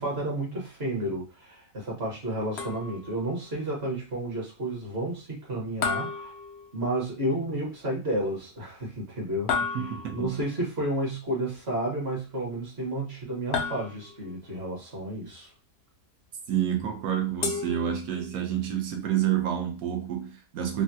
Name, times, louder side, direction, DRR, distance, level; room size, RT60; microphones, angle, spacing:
voice 1, 0.0-6.3 6.7-15.5, right 1 dB, 45° right, 1.2 m, -31 dB
sound 1, 2.6-3.2 5.8-7.1 9.5-10.4 13.5-14.4 17.4-18.4, left 5 dB, 90° left, 0.5 m, -32 dB
voice 2, 9.7-10.3 16.5-20.8, right 10 dB, 70° right, 1.1 m, -28 dB
3.3 x 2.2 x 2.6 m
omnidirectional pair, 1.7 m